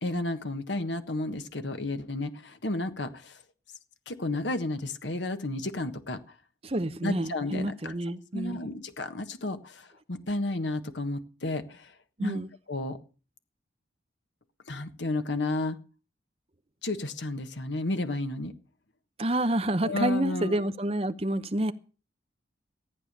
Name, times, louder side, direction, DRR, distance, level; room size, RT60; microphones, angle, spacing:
voice 1, 0.0-3.4 4.1-6.2 7.0-7.9 8.3-11.9 12.2-12.4 12.7-13.0 14.7-15.8 16.8-18.5 19.8-20.6, left 2 dB, 75° left, 1.5 m, -32 dB
voice 2, 6.6-8.6 12.2-12.5 19.2-21.7, right 1 dB, 30° right, 0.9 m, -28 dB
14.5 x 9.0 x 6.7 m
head